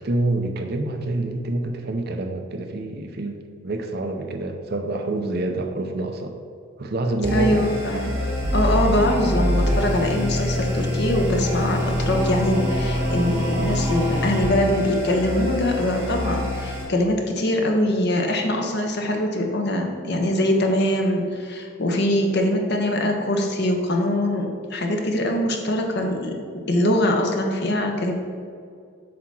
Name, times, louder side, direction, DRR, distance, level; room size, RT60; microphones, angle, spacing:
voice 1, 0.0-6.3 6.8-7.6, right 2 dB, 45° right, 5 dB, 0.5 m, -27 dB
voice 2, 7.2-8.2 8.5-26.3 26.7-28.1, left 1 dB, 50° left, 2 dB, 0.8 m, -23 dB
sound 1, 7.2-16.8, equal, 10° right, 1.6 m, -25 dB
7.4 x 2.9 x 6.0 m, 2.2 s
head